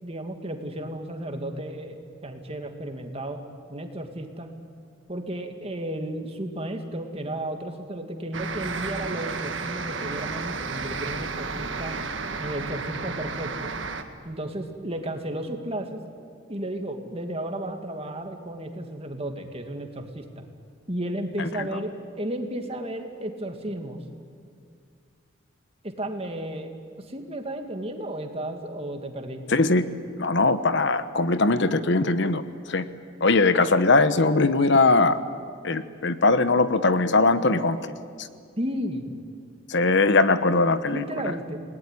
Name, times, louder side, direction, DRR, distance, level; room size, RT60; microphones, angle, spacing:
voice 1, 0.0-3.4 3.7-4.5 5.1-12.0 12.4-13.7 14.2-16.0 16.5-20.4 20.9-24.0 25.8-26.7 27.0-29.4 38.6-39.1 40.9-41.6, right 1 dB, 30° right, 5 dB, 2.3 m, -33 dB
sound 1, 8.3-14.0, right 4 dB, 65° right, 1.7 m, -32 dB
voice 2, 29.5-29.9 30.2-32.9 33.2-35.2 35.6-38.3 39.7-41.0, left 3 dB, 60° left, 12 dB, 1.1 m, -21 dB
29.0 x 19.5 x 9.9 m, 2.3 s
head